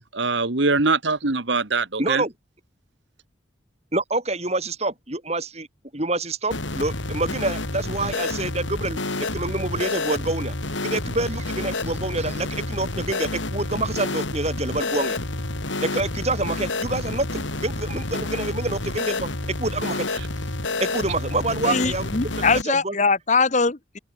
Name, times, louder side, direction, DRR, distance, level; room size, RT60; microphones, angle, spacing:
voice 1, 0.0-2.2, right 3 dB, 70° right, 1.6 m, -22 dB
voice 2, 2.0-2.3 3.9-5.7 5.9-9.0 9.3-10.5 10.8-15.2 15.8-19.3 19.6-20.1 20.8-22.3 22.6-22.9, right 2 dB, 35° right, 5.0 m, -27 dB
sound 1, 6.5-22.6, left 2 dB, 75° left, 3.1 m, -29 dB
voice 3, 21.6-24.0, left 4 dB, 40° left, 1.1 m, -22 dB
open air
head